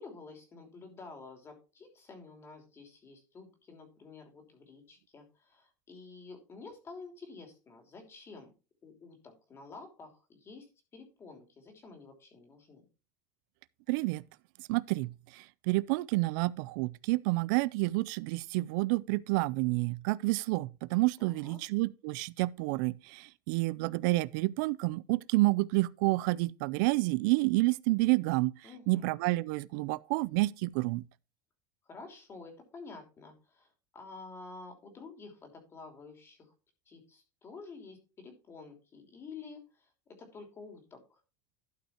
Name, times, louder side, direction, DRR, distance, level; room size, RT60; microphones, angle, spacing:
voice 1, 0.0-8.5 8.8-10.7 10.9-12.8 21.2-21.6 28.6-29.1 31.9-36.5 36.9-41.2, left 4 dB, 25° left, 3.0 m, -50 dB
voice 2, 13.9-14.2 14.7-28.5 28.9-31.0, right 21 dB, 70° right, 0.4 m, -29 dB
12.0 x 5.5 x 4.4 m
supercardioid pair, 150°, 11 cm